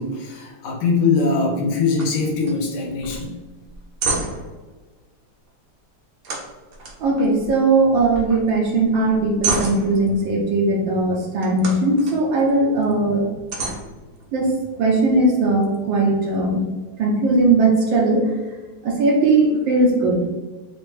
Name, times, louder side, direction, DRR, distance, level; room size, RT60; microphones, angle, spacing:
voice 1, 0.0-3.4, left 4 dB, 85° left, -2 dB, 1.6 m, -22 dB
sound 1, 2.0-2.2 2.4-2.6 3.0-3.2 3.6-4.6 6.2-7.7 8.0-8.5 8.9-10.2 11.4-12.2 12.7-12.8 13.5-14.5, right 3 dB, 55° right, 1.1 m, -29 dB
voice 2, 7.0-13.3 14.3-16.7 17.0-18.3 18.8-20.3, right 2 dB, 75° right, -1 dB, 1.5 m, -19 dB
5.2 x 2.9 x 3.2 m, 1.3 s
omnidirectional pair, 2.1 m